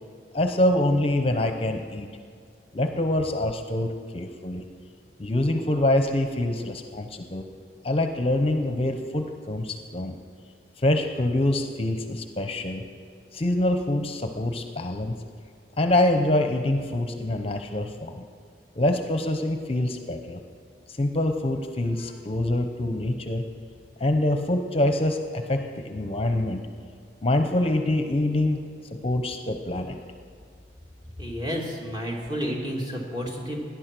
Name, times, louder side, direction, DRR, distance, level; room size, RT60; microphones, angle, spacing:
voice 1, 0.3-2.1 2.7-4.6 5.2-7.4 7.8-10.2 10.8-12.8 13.3-15.2 15.8-18.2 18.8-20.4 20.9-23.4 24.0-26.6 27.2-28.7 29.0-30.0, left 1 dB, 35° left, 6 dB, 0.8 m, -25 dB
voice 2, 31.2-33.7, equal, 25° right, -1 dB, 2.6 m, -31 dB
18.0 x 10.5 x 6.1 m, 2.2 s
head